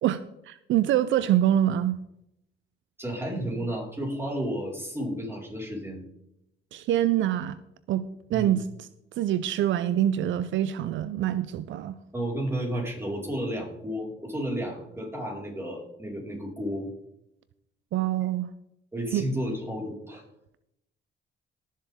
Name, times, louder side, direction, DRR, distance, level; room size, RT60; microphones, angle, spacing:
voice 1, 0.0-2.0 6.7-7.6 7.9-8.7 9.2-12.0 17.9-18.5 19.1-19.2, right 11 dB, 75° right, 14 dB, 0.5 m, -25 dB
voice 2, 3.0-6.0 8.3-8.6 12.1-16.9 18.9-20.2, equal, 10° right, -3 dB, 4.7 m, -32 dB
18.0 x 7.4 x 3.6 m, 0.80 s
cardioid pair, 90°, 20 cm